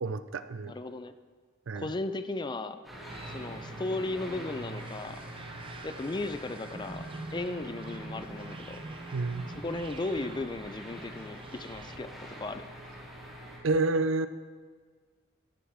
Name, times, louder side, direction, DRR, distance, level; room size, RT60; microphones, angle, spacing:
voice 1, 0.0-0.7 1.7-1.9 9.1-9.5 13.6-14.3, right 3 dB, 80° right, 12 dB, 0.5 m, -29 dB
voice 2, 0.6-1.1 1.7-2.8 3.3-5.2 5.8-8.8 9.5-12.7, left 2 dB, 25° left, 11 dB, 0.4 m, -36 dB
sound 1, 2.8-13.6, equal, ahead, 2.9 m, -45 dB
sound 2, 3.1-12.0, right 2 dB, 25° right, 0.5 m, -45 dB
13.5 x 11.5 x 3.5 m, 1.5 s
head